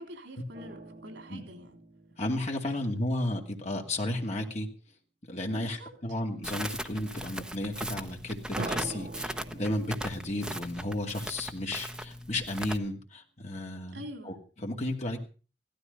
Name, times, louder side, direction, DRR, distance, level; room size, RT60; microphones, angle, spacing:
voice 1, 0.0-1.8 2.8-2.9 5.5-5.9 13.9-14.3, equal, 85° right, 3.3 m, -45 dB
sound 1, 0.5-3.6 8.6-12.2, right 2 dB, 45° right, 2.3 m, -44 dB
voice 2, 2.2-4.7 5.2-15.2, left 1 dB, 40° left, 2.4 m, -33 dB
Crackle, 6.4-12.8, right 1 dB, 5° right, 0.9 m, -38 dB
16.0 x 13.0 x 5.3 m
head